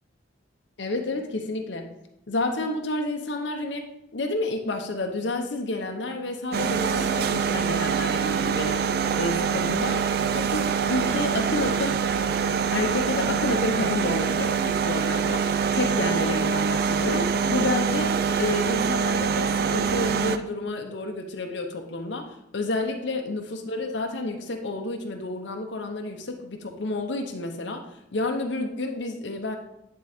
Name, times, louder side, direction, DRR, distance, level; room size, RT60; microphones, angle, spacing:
voice 1, 0.8-1.9 2.3-8.8 9.2-10.0 10.3-12.0 12.7-15.5 15.7-27.8 28.1-29.6, left 2 dB, 75° left, 3 dB, 0.8 m, -30 dB
sound 1, 6.5-20.4, right 6 dB, 55° right, 0.4 m, -25 dB
10.0 x 3.8 x 3.5 m, 0.84 s
head